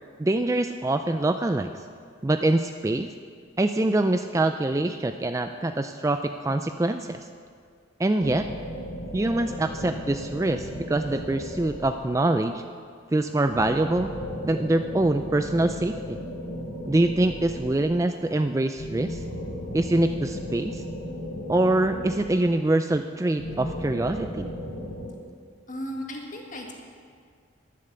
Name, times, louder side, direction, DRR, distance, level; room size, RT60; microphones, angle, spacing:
voice 1, 0.2-1.7 2.2-3.1 3.6-7.2 8.0-8.5 9.1-12.6 13.1-14.1 14.4-16.2 16.9-19.2 19.7-20.8 21.5-24.5, right 2 dB, 15° right, 8 dB, 0.3 m, -24 dB
sound 1, 8.2-12.4 13.5-18.1 18.8-22.8 23.4-25.1, equal, 70° left, 4.0 m, -36 dB
voice 2, 25.7-26.7, equal, 40° left, 1 dB, 1.8 m, -35 dB
11.5 x 11.5 x 6.8 m, 2.1 s
head